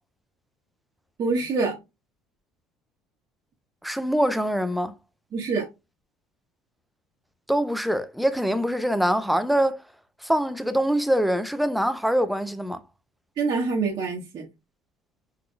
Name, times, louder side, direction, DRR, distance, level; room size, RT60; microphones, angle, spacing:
voice 1, 1.2-1.8 5.3-5.7 13.4-14.4, right 4 dB, 45° right, 1.4 m, -25 dB
voice 2, 3.8-4.9 7.5-9.8 10.2-12.8, equal, ahead, 0.6 m, -24 dB
5.6 x 3.8 x 2.3 m
supercardioid pair, 80°, 10 cm